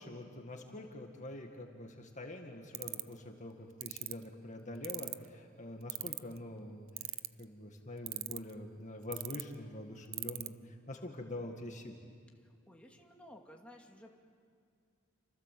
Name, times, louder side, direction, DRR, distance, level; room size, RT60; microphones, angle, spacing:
voice 1, 0.0-12.0, left 1 dB, 35° left, 3 dB, 2.0 m, -45 dB
sound 1, 2.7-3.1 3.8-4.1 4.8-5.3 5.9-6.4 7.0-7.4 8.1-8.5 9.1-9.4 10.1-10.5, right 18 dB, 70° right, 0.7 m, -37 dB
voice 2, 12.4-14.1, left 1 dB, 5° left, 0 dB, 2.4 m, -55 dB
29.0 x 26.5 x 7.7 m, 2.2 s
head